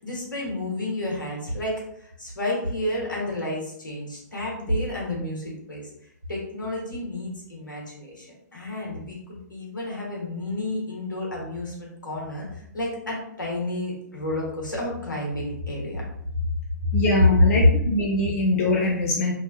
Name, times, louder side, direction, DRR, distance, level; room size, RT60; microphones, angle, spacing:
voice 1, 0.0-5.9 6.3-8.3 8.5-16.0 16.9-17.0, left 1 dB, 75° left, -3 dB, 1.1 m, -31 dB
voice 2, 16.9-19.3, left 1 dB, 50° left, -1 dB, 0.4 m, -22 dB
2.8 x 2.2 x 2.5 m, 0.74 s
figure-of-eight pair, 120°, 10 cm